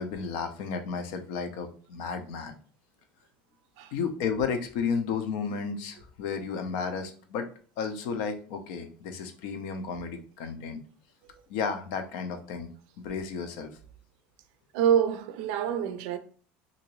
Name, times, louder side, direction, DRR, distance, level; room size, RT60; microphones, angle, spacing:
voice 1, 0.0-2.6 3.9-7.5 7.8-10.8 11.5-12.7 13.0-13.7, left 5 dB, 75° left, 0.5 m, -33 dB
voice 2, 14.7-16.2, right 9 dB, 85° right, 0.4 m, -26 dB
2.8 x 2.6 x 3.0 m
cardioid pair, 145°, 4 cm